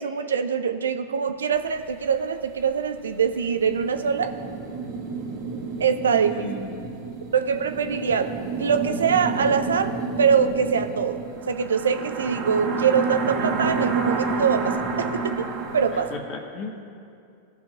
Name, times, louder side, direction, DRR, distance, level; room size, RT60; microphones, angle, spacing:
voice 1, 0.0-4.3 5.8-6.5 7.3-8.3 8.6-9.9 10.2-15.5 15.7-16.1, right 6 dB, 80° right, 9 dB, 0.4 m, -23 dB
sound 1, 1.5-1.6 1.8-1.9 2.5-2.6 3.1-16.2, right 4 dB, 50° right, 1.4 m, -30 dB
voice 2, 6.2-7.0 15.9-16.9, left 3 dB, 45° left, 3 dB, 1.2 m, -36 dB
16.5 x 5.7 x 2.4 m, 2.5 s
hypercardioid pair, 100°, 0 cm